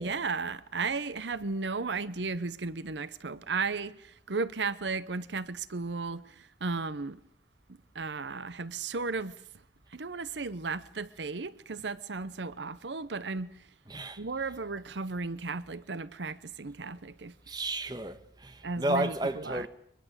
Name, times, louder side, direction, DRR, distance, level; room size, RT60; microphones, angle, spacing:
voice 1, 0.0-7.2 7.9-9.3 9.9-13.5 14.2-17.3 18.6-19.7, right 4 dB, 85° right, 0.9 m, -35 dB
voice 2, 13.9-14.2 17.5-19.7, right 1 dB, 25° right, 1.4 m, -32 dB
23.5 x 21.5 x 8.2 m
head